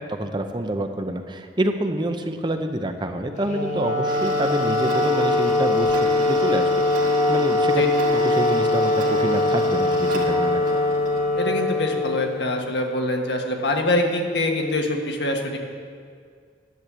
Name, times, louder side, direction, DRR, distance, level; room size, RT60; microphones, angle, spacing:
voice 1, 0.1-6.7 7.3-7.8 8.2-8.9 9.2-10.8, right 1 dB, 25° right, 6 dB, 0.7 m, -27 dB
Wind instrument woodwind instrument, 3.4-12.7, left 2 dB, 40° left, 1.2 m, -22 dB
Tick-tock, 4.1-11.3, right 2 dB, 45° right, 2.1 m, -31 dB
voice 2, 11.3-15.6, left 1 dB, 75° left, 2 dB, 1.6 m, -24 dB
11.0 x 8.4 x 7.5 m, 2.1 s
head